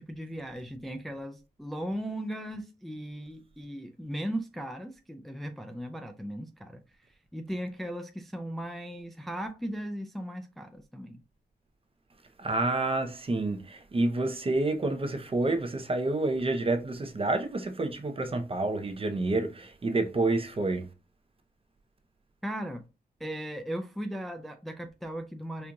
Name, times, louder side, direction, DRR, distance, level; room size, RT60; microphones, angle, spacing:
voice 1, 0.0-6.8 7.3-11.2 22.4-22.8 23.2-25.7, equal, ahead, 0.4 m, -37 dB
voice 2, 12.4-20.9, right 2 dB, 35° right, 0.7 m, -29 dB
4.4 x 2.4 x 2.6 m
wide cardioid pair, 90°, 17 cm